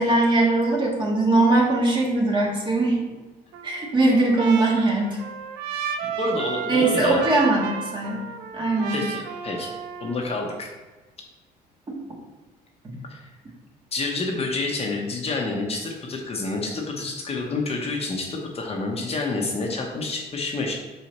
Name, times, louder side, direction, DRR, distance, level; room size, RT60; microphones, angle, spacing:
voice 1, 0.0-3.0 3.6-5.2 6.7-8.2 8.5-9.0 11.9-12.0 12.8-13.0, right 2 dB, 30° right, -2 dB, 1.8 m, -21 dB
Trumpet, 3.5-10.3, right 8 dB, 90° right, 0.6 m, -33 dB
voice 2, 6.0-7.3 8.9-9.7 10.0-10.7 13.1-13.3 13.9-20.7, left 3 dB, 35° left, 0 dB, 1.1 m, -28 dB
5.5 x 4.6 x 4.2 m, 1.2 s
cardioid pair, 110°, 17 cm